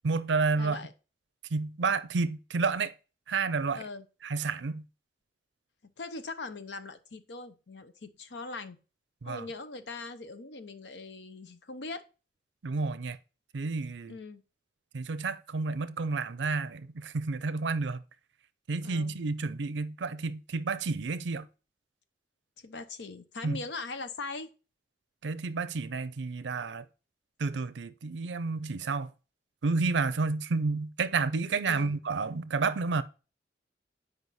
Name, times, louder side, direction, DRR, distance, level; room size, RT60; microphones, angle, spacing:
voice 1, 0.0-0.8 1.5-2.9 3.3-3.8 4.2-4.8 9.2-9.4 12.6-13.2 13.5-14.2 14.9-18.0 18.7-21.5 23.4-23.6 25.2-26.9 27.4-29.1 29.6-33.0, right 4 dB, 80° right, 0.5 m, -30 dB
voice 2, 0.6-0.9 3.8-4.1 6.0-8.8 9.3-12.0 14.1-14.4 18.8-19.2 22.6-24.5 31.6-31.9, left 3 dB, 70° left, 0.8 m, -41 dB
8.1 x 5.1 x 4.1 m
head